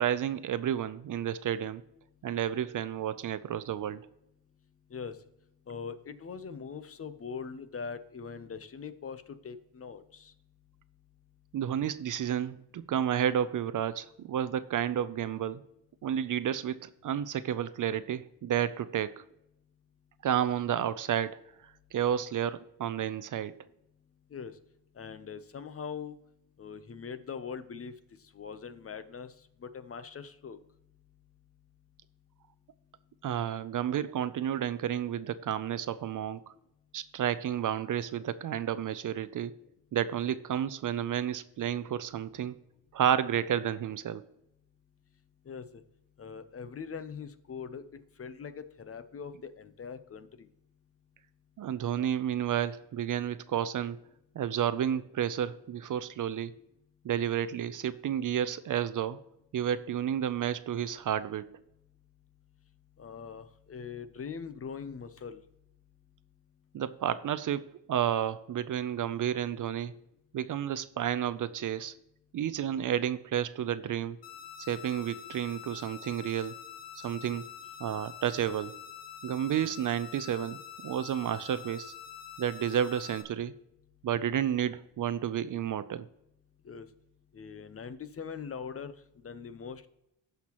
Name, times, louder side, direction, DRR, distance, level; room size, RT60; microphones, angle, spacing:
voice 1, 0.0-1.8 2.2-4.0 11.5-15.6 16.0-19.2 20.2-21.4 21.9-23.5 33.2-36.4 36.9-39.5 39.9-42.6 42.9-44.3 51.6-54.0 54.4-56.5 57.0-59.2 59.5-61.5 66.7-70.0 70.3-71.9 72.3-74.2 74.7-76.6 77.0-77.5 77.8-78.7 79.2-81.9 82.4-83.6 84.0-86.1, right 10 dB, 50° right, 0.5 m, -31 dB
voice 2, 5.7-10.3 24.3-24.6 25.0-26.2 26.6-27.9 28.3-29.3 29.6-30.6 45.5-45.8 46.2-47.8 48.2-50.5 63.0-65.4 86.6-86.9 87.3-89.9, left 6 dB, 35° left, 0.7 m, -42 dB
sound 1, 74.2-83.2, left 9 dB, 75° left, 1.3 m, -46 dB
16.0 x 5.8 x 3.0 m
cardioid pair, 110°, 42 cm